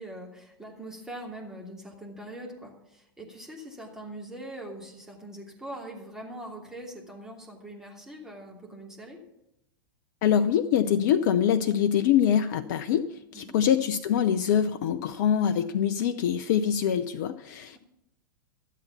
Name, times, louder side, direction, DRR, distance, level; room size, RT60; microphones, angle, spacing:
voice 1, 0.0-9.2 13.3-13.6 17.7-17.8, right 1 dB, 5° right, -1 dB, 2.9 m, -42 dB
voice 2, 10.2-17.8, left 9 dB, 50° left, 11 dB, 0.6 m, -24 dB
12.5 x 8.3 x 6.9 m, 0.84 s
figure-of-eight pair, 95°, 12 cm